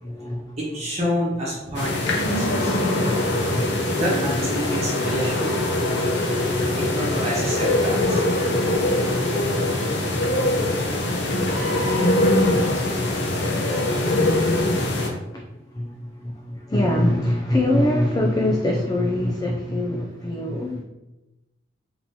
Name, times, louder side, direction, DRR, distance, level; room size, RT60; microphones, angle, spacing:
voice 1, 0.0-0.6 2.3-4.0 4.6-5.2 5.7-7.2 8.3-20.8, left 1 dB, 20° left, 0.4 m, -28 dB
voice 2, 0.6-2.0 2.2-2.7 4.0-5.6 6.8-8.2, equal, 35° right, 1.1 m, -27 dB
sound 1, 1.7-15.1, left 1 dB, 65° left, 0.7 m, -22 dB
4.2 x 3.7 x 2.8 m
head